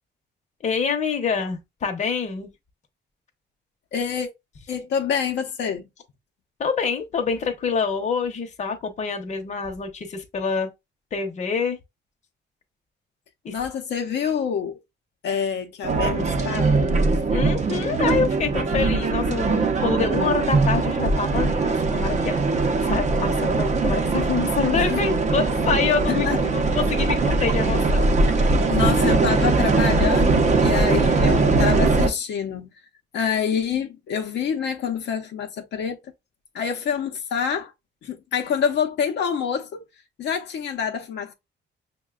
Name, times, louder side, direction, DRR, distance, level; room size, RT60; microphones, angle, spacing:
voice 1, 0.6-2.5 6.6-10.7 11.1-11.8 13.4-13.6 17.3-28.2, left 5 dB, 40° left, 0.8 m, -26 dB
voice 2, 3.9-4.3 4.7-5.8 13.5-14.8 15.2-17.1 24.8-25.0 26.1-26.4 28.7-32.7 33.1-36.0 36.5-37.7 38.0-39.8 40.2-41.3, left 7 dB, 70° left, 0.7 m, -26 dB
sound 1, 15.8-32.1, right 3 dB, 40° right, 0.6 m, -21 dB
6.3 x 2.2 x 2.3 m
cardioid pair, 155°, 18 cm